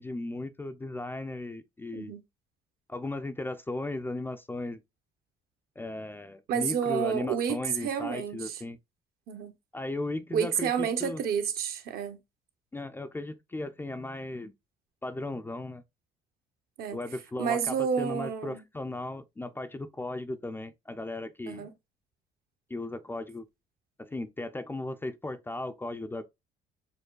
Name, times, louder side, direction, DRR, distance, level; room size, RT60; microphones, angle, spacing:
voice 1, 0.0-2.1 2.9-4.8 5.8-8.8 9.7-11.2 12.7-14.5 15.0-15.8 16.9-21.7 22.7-23.5 24.0-26.2, left 2 dB, 15° left, 0.3 m, -36 dB
voice 2, 6.5-8.6 9.3-9.5 10.3-12.2 16.8-17.0 17.4-18.6 21.5-21.7, right 8 dB, 65° right, 0.7 m, -30 dB
6.5 x 2.2 x 2.3 m
cardioid pair, 110°, 17 cm